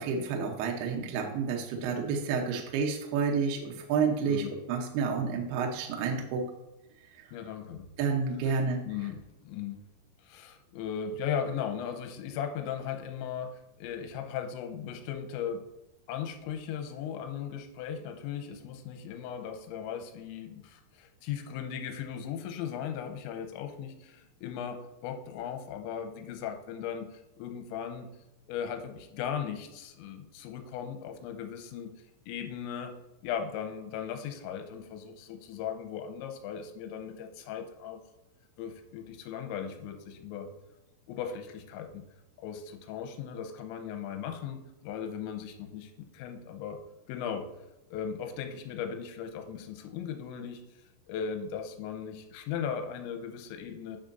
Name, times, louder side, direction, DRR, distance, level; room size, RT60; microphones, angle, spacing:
voice 1, 0.0-6.4 7.2-7.3 8.0-8.8, right 5 dB, 75° right, 1 dB, 2.5 m, -30 dB
voice 2, 4.2-4.6 7.3-7.9 8.4-9.8 10.2-13.5 13.8-15.6 16.1-28.1 28.5-31.9 32.3-32.9 33.2-38.0 38.6-40.5 41.1-42.0 42.4-46.8 47.1-47.5 47.9-50.6 51.1-54.0, left 8 dB, 85° left, 5 dB, 2.9 m, -37 dB
9.4 x 6.3 x 2.6 m, 0.94 s
omnidirectional pair, 5.4 m